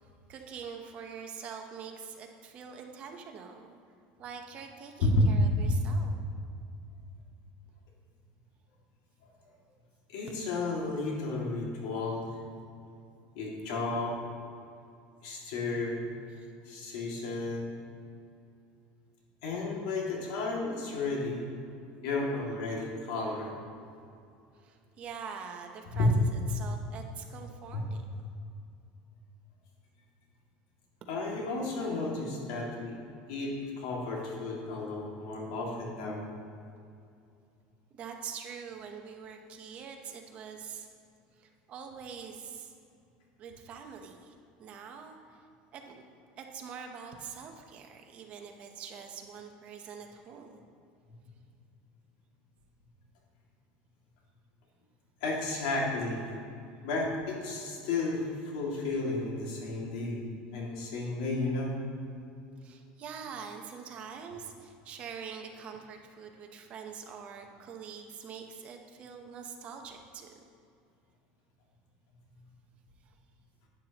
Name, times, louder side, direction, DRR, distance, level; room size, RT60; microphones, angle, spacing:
voice 1, 0.3-3.7 4.2-6.1 16.4-16.5 24.6-26.2 26.5-28.0 37.9-40.9 41.4-42.7 43.4-44.3 44.6-45.1 45.7-46.0 46.4-50.5 62.6-70.3, right 6 dB, 35° right, 3 dB, 0.9 m, -44 dB
voice 2, 5.0-5.7 9.2-9.3 10.1-12.3 13.3-14.2 15.2-16.0 16.6-17.8 19.4-21.4 22.0-23.5 25.9-26.1 27.7-27.8 31.1-33.0 33.3-36.3 55.2-56.2 56.8-60.2 60.5-61.8, left 2 dB, 80° left, -2 dB, 2.2 m, -32 dB
11.0 x 9.4 x 2.9 m, 2.5 s
cardioid pair, 160°, 4 cm